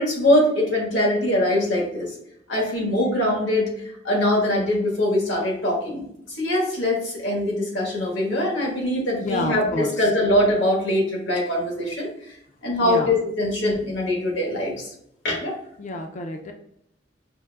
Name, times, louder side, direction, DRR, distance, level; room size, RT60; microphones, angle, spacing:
voice 1, 0.0-2.1 2.5-3.7 4.0-12.1 12.6-14.8 15.2-15.5, left 1 dB, 75° left, -2 dB, 1.4 m, -22 dB
voice 2, 9.2-9.9 12.8-13.1 15.8-16.5, left 2 dB, 40° left, 4 dB, 0.4 m, -28 dB
5.9 x 2.5 x 2.3 m, 0.72 s
head